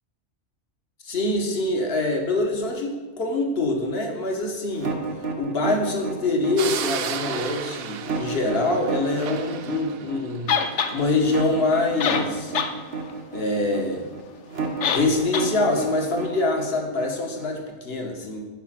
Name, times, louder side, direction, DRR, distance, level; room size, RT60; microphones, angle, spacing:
voice 1, 1.0-4.9 5.4-10.5 10.9-12.5 13.3-14.1 14.9-18.4, left 2 dB, 60° left, 2 dB, 1.7 m, -25 dB
sound 1, 4.7-17.6, right 4 dB, 85° right, 1.7 m, -31 dB
sound 2, 6.6-11.0, right 8 dB, 65° right, 0.8 m, -33 dB
sound 3, 10.5-10.9 11.7-11.8 12.0-12.7 13.1-13.2 14.8-15.1 15.3-15.5, left 7 dB, 85° left, 1.1 m, -23 dB
11.0 x 5.1 x 7.5 m, 1.3 s
omnidirectional pair, 1.2 m